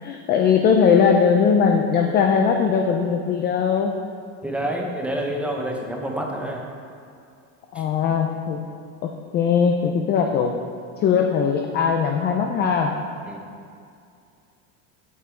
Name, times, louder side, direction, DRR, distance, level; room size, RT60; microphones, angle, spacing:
voice 1, 0.0-3.9 7.7-8.7 9.0-10.5 11.0-12.9, left 6 dB, 25° left, 3 dB, 0.4 m, -20 dB
voice 2, 4.4-6.6 7.8-7.9 13.3-13.4, right 1 dB, 5° right, 0 dB, 0.7 m, -28 dB
8.2 x 7.3 x 4.4 m, 2.4 s
cardioid pair, 155°, 40 cm